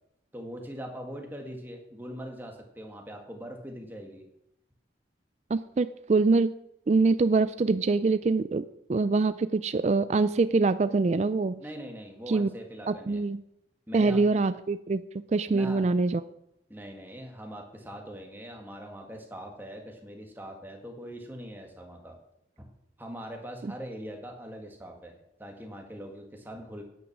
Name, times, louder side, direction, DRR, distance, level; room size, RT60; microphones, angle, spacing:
voice 1, 0.3-4.3 11.6-13.2 13.9-14.2 15.5-15.9 16.7-22.2 22.6-22.7 23.0-26.8, equal, 10° right, 2 dB, 1.8 m, -42 dB
voice 2, 5.5-6.5 6.9-8.6 8.9-11.6 12.3-12.5 12.9-13.4 13.9-16.2 23.6-23.7, right 3 dB, 35° right, 13 dB, 0.3 m, -24 dB
10.0 x 9.2 x 6.0 m, 0.82 s
head